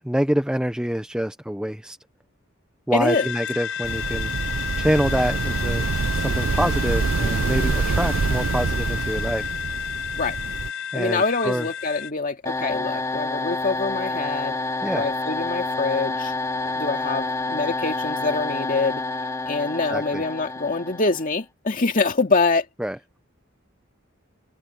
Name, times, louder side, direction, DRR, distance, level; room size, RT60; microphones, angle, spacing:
voice 1, 0.0-2.0 2.9-4.3 4.8-5.9 6.1-9.5 10.9-11.7 14.8-15.0 19.9-20.2 22.8-23.0, equal, 5° right, 0.7 m, -26 dB
voice 2, 2.9-3.3 10.2-10.4 10.9-14.6 14.9-16.3 16.8-19.0 19.5-22.7, left 3 dB, 45° left, 2.4 m, -25 dB
sound 1, 3.1-12.1, left 7 dB, 75° left, 7.5 m, -30 dB
sound 2, 3.8-10.7, right 5 dB, 70° right, 0.5 m, -26 dB
sound 3, 12.4-21.4, left 2 dB, 15° left, 2.4 m, -28 dB
open air
head